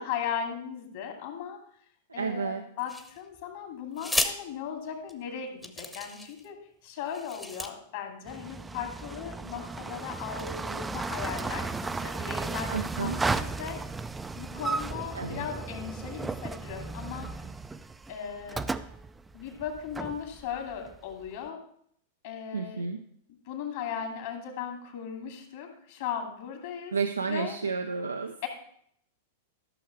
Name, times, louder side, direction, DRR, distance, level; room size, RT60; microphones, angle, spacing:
voice 1, 0.0-1.6 2.1-6.6 6.8-13.8 14.4-17.3 18.1-18.7 19.3-21.6 22.2-22.9 23.5-27.0 27.2-27.6 28.4-28.5, left 8 dB, 55° left, 3 dB, 2.4 m, -37 dB
voice 2, 2.2-2.6 12.7-13.2 15.1-15.4 22.5-23.0 26.9-28.3, right 5 dB, 80° right, 6 dB, 0.5 m, -31 dB
Tape Measure, 2.9-3.4 4.0-4.3 5.1-5.2 5.6-6.5 7.1-7.7, left 1 dB, 5° left, 1.0 m, -32 dB
sound 1, 8.3-21.3, right 3 dB, 10° right, 0.4 m, -35 dB
13.0 x 6.5 x 4.5 m, 0.66 s
figure-of-eight pair, 95°, 0 cm